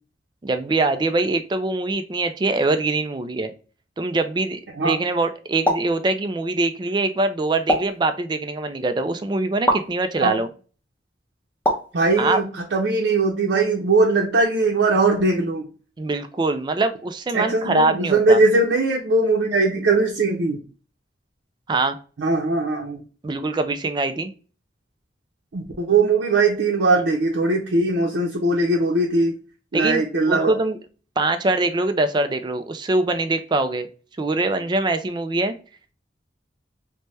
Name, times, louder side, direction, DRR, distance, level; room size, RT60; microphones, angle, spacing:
voice 1, 0.4-3.5 4.0-10.5 12.2-12.4 16.0-18.4 21.7-22.0 23.2-24.3 29.7-30.8 31.2-33.9 34.2-35.5, right 2 dB, 25° right, 9 dB, 0.3 m, -23 dB
sound 1, 5.6-6.0 7.7-8.0 9.7-9.9 11.6-12.0, equal, 10° left, 0.6 m, -22 dB
voice 2, 11.9-15.7 17.3-20.6 22.2-23.0 25.5-29.4 29.7-30.6, right 3 dB, 90° right, -1 dB, 0.6 m, -20 dB
3.3 x 2.2 x 2.6 m, 0.38 s
head